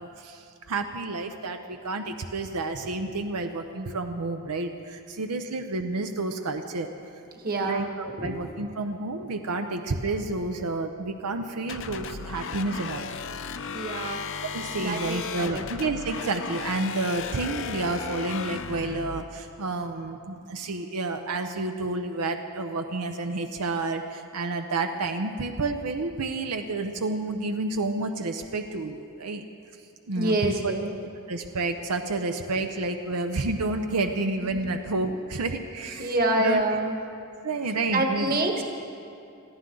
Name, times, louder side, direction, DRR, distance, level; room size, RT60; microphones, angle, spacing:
voice 1, 0.0-6.9 7.6-13.1 14.5-29.4 30.1-30.7 31.3-36.6 37.4-38.4, right 3 dB, 90° right, 6 dB, 0.7 m, -30 dB
voice 2, 7.3-7.9 8.2-8.4 13.7-14.2 14.8-15.6 30.1-31.0 34.4-34.6 36.0-37.0 37.9-38.6, right 2 dB, 40° right, 3 dB, 1.5 m, -27 dB
sound 1, 11.7-19.2, left 5 dB, 60° left, 0.7 m, -35 dB
21.0 x 15.0 x 3.9 m, 2.6 s
head